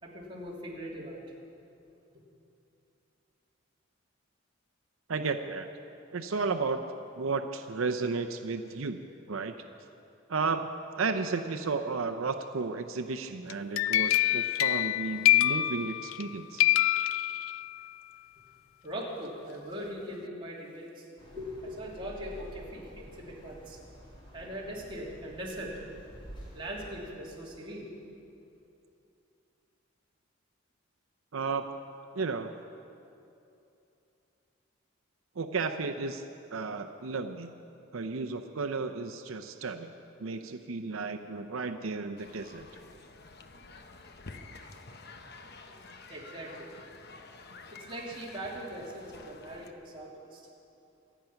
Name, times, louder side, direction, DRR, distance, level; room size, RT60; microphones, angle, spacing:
voice 1, 0.0-1.2 18.8-21.1 21.3-23.8 24.3-25.7 26.5-27.9 46.1-46.7 47.7-50.4, equal, 25° right, -5 dB, 3.0 m, -40 dB
voice 2, 5.1-5.7 6.1-6.8 7.2-9.5 10.3-10.7 11.0-16.7 31.3-31.7 32.1-32.5 35.4-36.2 36.5-37.5 37.9-39.9 40.2-42.7, right 4 dB, 90° right, 7 dB, 0.7 m, -33 dB
sound 1, 13.5-16.3 16.6-17.9, left 15 dB, 80° left, 0.3 m, -26 dB
sound 2, 21.2-27.4, equal, 25° left, 3.1 m, -49 dB
sound 3, 42.2-49.7, left 3 dB, 55° left, 1.0 m, -49 dB
26.0 x 9.2 x 5.8 m, 2.7 s
head